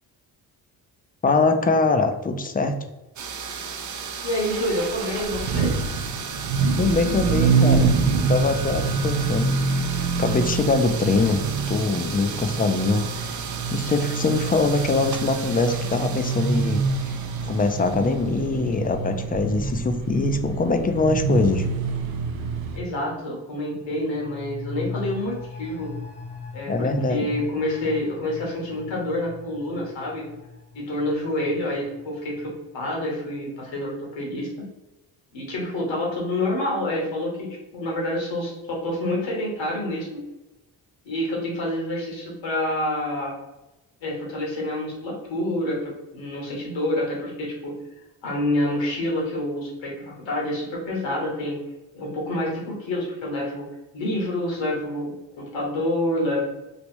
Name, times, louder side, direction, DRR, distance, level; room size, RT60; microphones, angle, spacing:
voice 1, 1.2-2.8 6.7-7.9 8.3-9.5 10.0-11.4 11.7-13.4 13.7-21.6 26.7-27.3, left 3 dB, 20° left, 7 dB, 0.4 m, -23 dB
sound 1, 3.2-18.9, right 6 dB, 40° right, 0.5 m, -35 dB
voice 2, 4.2-5.8 22.7-25.9 26.5-30.3 30.7-34.5 35.3-40.2 41.0-43.3 44.0-47.7 48.2-51.6 51.9-53.6 53.9-56.5, left 1 dB, 80° left, -2 dB, 1.3 m, -28 dB
sound 2, 4.5-22.8, right 4 dB, 85° right, 0.6 m, -26 dB
sound 3, 23.7-33.1 33.4-33.5, left 4 dB, 60° left, 0.8 m, -40 dB
3.1 x 2.5 x 3.1 m, 1.0 s
supercardioid pair, 55°, 45 cm